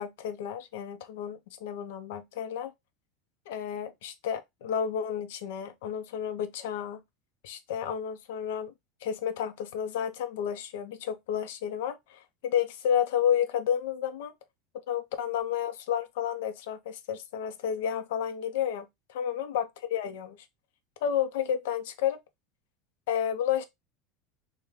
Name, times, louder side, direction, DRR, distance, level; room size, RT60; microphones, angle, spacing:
voice 1, 0.0-2.7 3.5-7.0 7.4-8.7 9.0-14.3 14.9-20.4 21.0-22.2 23.1-23.6, left 9 dB, 75° left, 0.5 m, -31 dB
3.1 x 2.1 x 3.5 m
hypercardioid pair, 95°, 0 cm